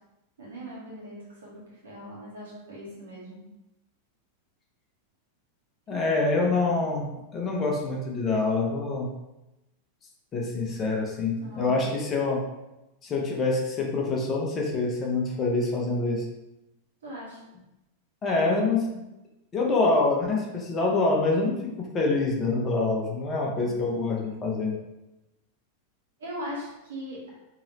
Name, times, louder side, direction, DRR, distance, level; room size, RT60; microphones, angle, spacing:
voice 1, 0.4-3.4 5.9-6.1 11.4-11.8 17.0-17.4 23.4-23.8 26.2-27.2, equal, 65° right, -5 dB, 1.5 m, -40 dB
voice 2, 5.9-7.1 7.3-9.1 10.3-12.4 13.0-16.2 18.2-18.8 19.5-21.5 21.9-24.7, left 3 dB, 25° left, -1 dB, 0.8 m, -25 dB
3.7 x 3.0 x 2.9 m, 0.95 s
figure-of-eight pair, 90°, 0 cm